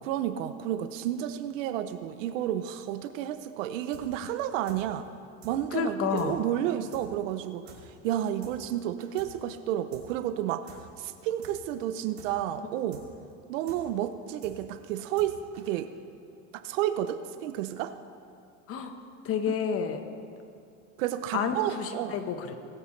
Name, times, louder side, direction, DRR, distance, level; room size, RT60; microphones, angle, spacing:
voice 1, 0.0-5.1 5.4-13.0 13.5-15.9 16.6-17.9 21.0-22.2, right 11 dB, 85° right, 10 dB, 0.7 m, -31 dB
sound 1, 3.9-4.0 4.3-4.4 4.7-4.8 5.0-5.1 5.4-5.5 5.8-5.9 6.2-6.3 6.5-6.6 6.9-7.0 7.3-7.4 7.7-7.8 8.0-8.1 8.4-8.5 8.8-9.3 9.5-9.6 9.9-10.0 10.3-10.4 10.7-10.8 11.0-11.1 11.4-11.5 11.8-11.9 12.2-12.3 12.5-12.6 12.9-13.0 13.3-13.4 13.7-13.8 14.0-14.1 14.4-14.5 14.8-15.3 15.5-15.6, right 8 dB, 70° right, 3.1 m, -50 dB
voice 2, 5.7-6.4 18.7-18.9 19.2-20.1 21.3-22.5, left 7 dB, 35° left, 7 dB, 1.1 m, -30 dB
20.0 x 8.7 x 3.2 m, 2.4 s
supercardioid pair, 130°, 37 cm